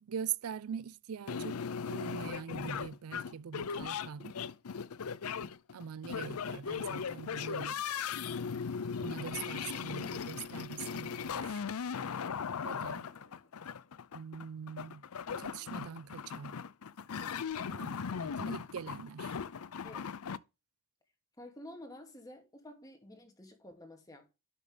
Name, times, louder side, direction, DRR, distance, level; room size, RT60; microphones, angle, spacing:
voice 1, 0.0-4.4 5.7-7.8 9.0-11.6 12.6-13.1 14.1-15.0 15.4-16.5 17.7-19.3, right 7 dB, 80° right, 0.4 m, -43 dB
sound 1, 1.3-20.4, left 6 dB, 85° left, 0.5 m, -38 dB
sound 2, 13.0-13.9 15.6-16.5, left 2 dB, 65° left, 2.9 m, -63 dB
voice 2, 21.4-24.3, left 1 dB, 15° left, 2.4 m, -50 dB
11.0 x 6.5 x 3.4 m
head